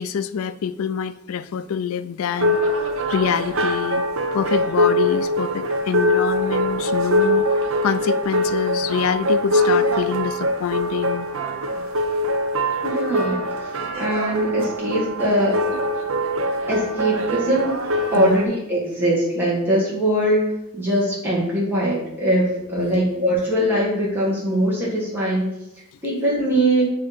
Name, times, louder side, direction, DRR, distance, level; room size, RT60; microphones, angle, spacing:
voice 1, 0.0-2.6 3.1-4.1 4.3-7.4 7.8-11.3 18.1-18.4 22.8-23.0, left 7 dB, 70° left, 14 dB, 0.3 m, -25 dB
sound 1, 2.3-18.5, equal, 60° right, 0.6 m, -23 dB
voice 2, 12.8-13.7 14.0-15.6 16.7-17.8 18.1-25.5 26.0-26.9, right 1 dB, 10° right, -6 dB, 1.5 m, -21 dB
7.2 x 2.8 x 5.0 m, 0.82 s
head